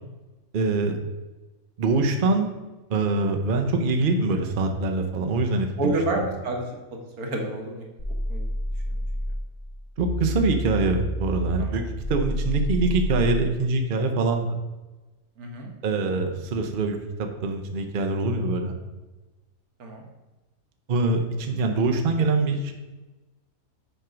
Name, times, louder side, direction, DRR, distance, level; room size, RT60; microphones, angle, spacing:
voice 1, 0.5-1.0 1.8-2.5 2.9-5.9 10.0-14.6 15.8-18.7 20.9-22.7, right 3 dB, 45° right, 4 dB, 0.8 m, -24 dB
voice 2, 5.8-6.7 6.9-7.9 8.3-8.5 8.9-9.0 11.6-11.9 15.4-15.7 19.8-20.1, right 2 dB, 85° right, 1 dB, 1.6 m, -29 dB
sound 1, 8.0-9.4 10.0-13.4, equal, 20° left, 1.4 m, -29 dB
6.8 x 4.5 x 5.0 m, 1.1 s
omnidirectional pair, 1.5 m